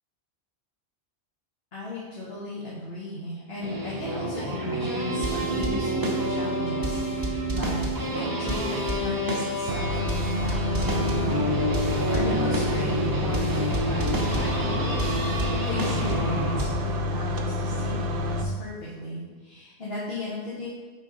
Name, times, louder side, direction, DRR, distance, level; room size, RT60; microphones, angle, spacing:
voice 1, 1.7-15.2 15.6-20.7, left 1 dB, 65° left, -9 dB, 1.6 m, -36 dB
sound 1, 3.6-16.7, right 1 dB, 20° right, 0.7 m, -28 dB
sound 2, 9.7-18.4, left 1 dB, 60° right, 0.7 m, -28 dB
6.4 x 5.0 x 4.0 m, 1.3 s
omnidirectional pair, 1.1 m